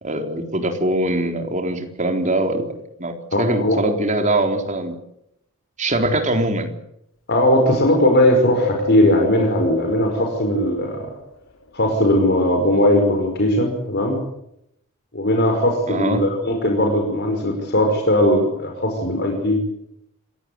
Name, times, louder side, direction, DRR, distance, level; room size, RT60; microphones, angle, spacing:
voice 1, 0.0-2.7 3.0-5.0 5.8-6.7 15.9-16.3, right 1 dB, 35° right, 4 dB, 3.9 m, -22 dB
voice 2, 3.3-3.8 7.3-11.1 11.7-14.2 15.1-19.6, left 1 dB, 50° left, 2 dB, 5.5 m, -18 dB
Wind, 7.6-11.1 11.7-12.9 13.5-13.6, left 2 dB, 65° left, 2.8 m, -31 dB
27.0 x 16.5 x 9.8 m, 0.79 s
head